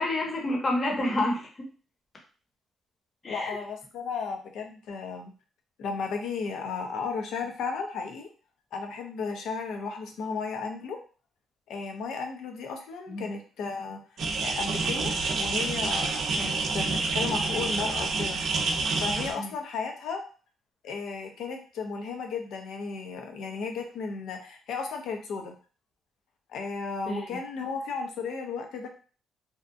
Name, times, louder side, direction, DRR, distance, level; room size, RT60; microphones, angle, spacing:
voice 1, 0.0-1.5 3.2-3.6 13.1-13.3 19.4-19.5 27.1-27.2, left 1 dB, 35° left, 0 dB, 0.8 m, -28 dB
voice 2, 3.3-5.3 5.8-8.3 8.7-11.0 11.7-14.0 14.4-18.4 19.0-20.2 20.8-25.5 26.5-28.9, left 5 dB, 80° left, 3 dB, 0.6 m, -34 dB
sound 1, 14.2-19.3, right 3 dB, 65° right, 0.5 m, -28 dB
2.7 x 2.2 x 2.5 m, 0.38 s
cardioid pair, 90°, 0 cm